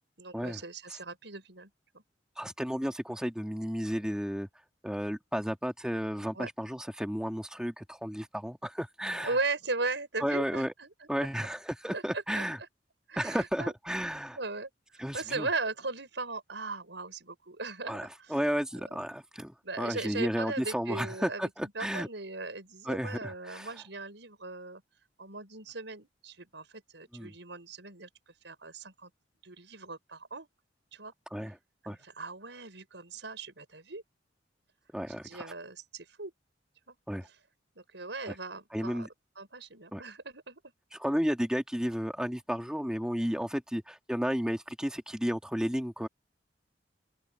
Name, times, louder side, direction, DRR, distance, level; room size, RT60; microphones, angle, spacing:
voice 1, 0.2-1.7 1.9-2.0 6.3-6.5 9.2-10.9 11.9-12.4 13.1-13.7 14.4-14.7 15.1-18.3 18.9-19.0 19.6-24.8 25.2-28.1 28.4-29.1 29.4-30.5 30.9-31.1 31.8-34.0 35.2-36.3 36.9-37.0 37.7-39.1 39.4-40.6, right 3 dB, 75° right, 6.8 m, -38 dB
voice 2, 2.4-4.5 4.8-9.4 10.2-10.7 11.1-12.6 13.2-14.4 15.0-15.5 17.9-22.1 22.8-23.8 27.1-27.3 31.3-31.6 31.9-32.0 34.9-35.5 37.1-37.3 38.3-38.4 38.7-39.1 39.9-40.0 40.9-46.1, equal, 5° right, 2.3 m, -33 dB
open air
head